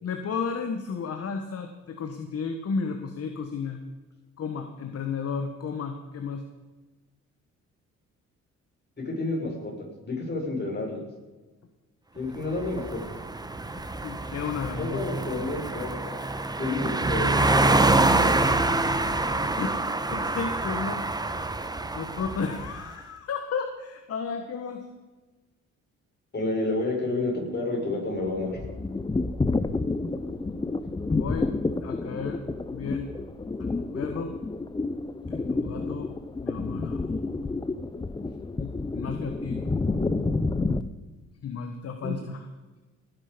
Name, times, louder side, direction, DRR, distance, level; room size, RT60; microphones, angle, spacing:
voice 1, 0.0-3.8 4.4-6.4 13.6-13.7 14.0-15.0 19.4-19.7 20.1-21.4 21.9-24.9 31.1-31.5 31.8-32.4 32.7-33.1 33.6-34.4 35.3-36.1 36.4-37.0 38.6-39.6 41.4-42.4, left 5 dB, 50° left, 6 dB, 1.5 m, -33 dB
voice 2, 9.0-9.7 10.0-11.0 12.1-13.0 14.8-17.9 26.3-28.6, left 2 dB, 35° left, -1 dB, 6.4 m, -30 dB
sound 1, 12.4-22.7, right 2 dB, 15° right, 1.1 m, -26 dB
sound 2, 28.2-40.8, left 3 dB, 15° left, 0.8 m, -29 dB
18.5 x 10.5 x 5.2 m, 1.2 s
cardioid pair, 90°, 30 cm